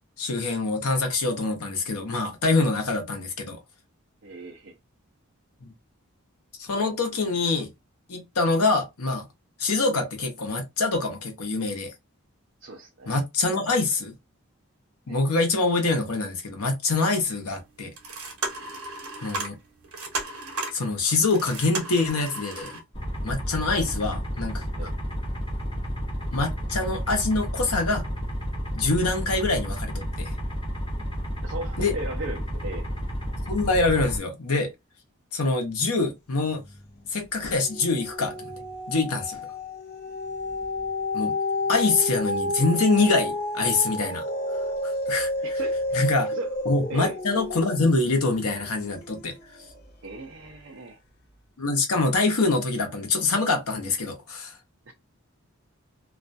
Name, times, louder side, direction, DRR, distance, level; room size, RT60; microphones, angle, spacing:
voice 1, 0.2-3.6 5.6-5.7 6.6-7.7 8.1-9.3 9.6-11.9 13.1-14.1 15.1-17.9 19.2-19.5 20.7-22.7 23.2-24.9 26.3-28.0 28.7-30.3 31.8-32.0 33.5-34.7 35.3-36.6 37.1-38.3 38.9-39.4 41.1-41.3 41.7-44.2 44.8-45.3 45.9-46.3 46.6-49.3 51.6-54.5, left 3 dB, 85° left, 0.8 m, -25 dB
voice 2, 4.2-4.7 12.6-13.1 15.1-15.2 18.6-18.7 23.7-24.0 24.8-24.9 31.4-32.9 45.4-46.0 46.3-46.5 46.9-47.2 50.0-51.0 54.9-55.0, right 2 dB, 55° right, 0.5 m, -37 dB
sound 1, 17.2-17.3 17.8-22.8, right 2 dB, 80° right, 0.9 m, -34 dB
sound 2, 22.9-34.2, equal, 20° left, 0.9 m, -31 dB
sound 3, 36.5-37.1 37.4-49.9 50.5-50.6, left 2 dB, 45° left, 0.5 m, -31 dB
2.4 x 2.2 x 2.5 m
head